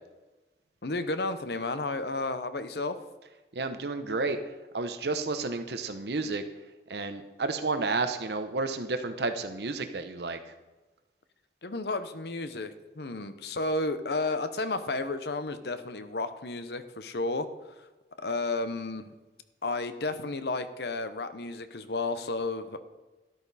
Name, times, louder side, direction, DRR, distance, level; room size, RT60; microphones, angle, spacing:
voice 1, 0.8-3.0 11.6-17.5 18.2-19.1 19.6-22.8, left 2 dB, 70° left, 11 dB, 0.9 m, -32 dB
voice 2, 3.5-6.4 6.9-10.5, right 3 dB, 75° right, 8 dB, 0.9 m, -31 dB
13.0 x 11.0 x 4.2 m, 1.1 s
head